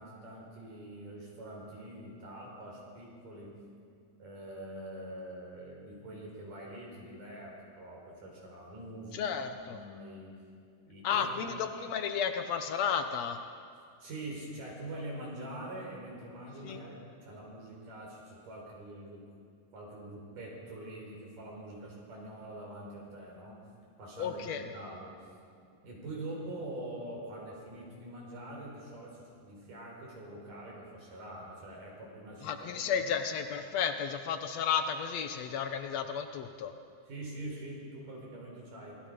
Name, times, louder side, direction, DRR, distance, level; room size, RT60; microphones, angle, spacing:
voice 1, 0.0-3.5 4.2-9.4 9.7-10.3 10.9-11.3 14.0-19.2 19.7-23.6 24.0-25.2 25.8-33.0 37.1-39.0, right 1 dB, 60° right, -2 dB, 6.2 m, -44 dB
voice 2, 9.1-9.8 11.0-13.4 16.6-16.8 24.2-24.7 32.4-36.7, left 7 dB, 80° left, 7 dB, 1.5 m, -33 dB
26.5 x 23.0 x 5.2 m, 2.3 s
omnidirectional pair, 4.3 m